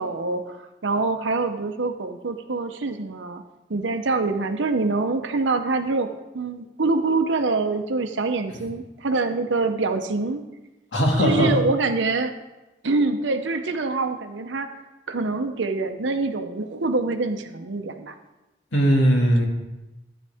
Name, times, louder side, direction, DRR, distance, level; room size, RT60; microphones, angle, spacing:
voice 1, 0.0-3.4 3.7-10.4 11.2-12.3 12.8-14.7 15.1-18.1, right 3 dB, 80° right, 6 dB, 0.8 m, -25 dB
voice 2, 10.9-11.5 18.7-19.5, equal, 80° left, 0 dB, 2.1 m, -19 dB
12.0 x 9.5 x 3.5 m, 1.0 s
head